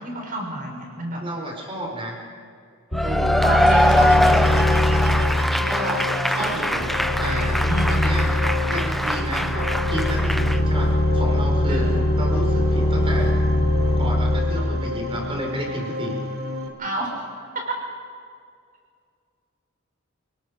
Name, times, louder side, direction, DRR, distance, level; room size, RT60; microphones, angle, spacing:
voice 1, 0.0-1.2 3.4-4.4 7.5-7.9 11.7-12.0 16.8-17.5, right 1 dB, 40° right, 0 dB, 6.3 m, -30 dB
voice 2, 1.2-2.1 3.0-3.4 5.7-6.9 7.2-7.6 7.9-8.3 8.7-11.9 12.1-13.3 14.0-16.2, right 1 dB, 25° right, 0 dB, 5.1 m, -31 dB
sound 1, 2.9-15.4, left 1 dB, 25° left, 3.7 m, -22 dB
Cheering / Applause / Crowd, 2.9-10.6, left 1 dB, ahead, 0.5 m, -23 dB
sound 2, 3.1-16.7, left 1 dB, 80° right, 3.2 m, -31 dB
29.0 x 19.0 x 5.2 m, 2.3 s
head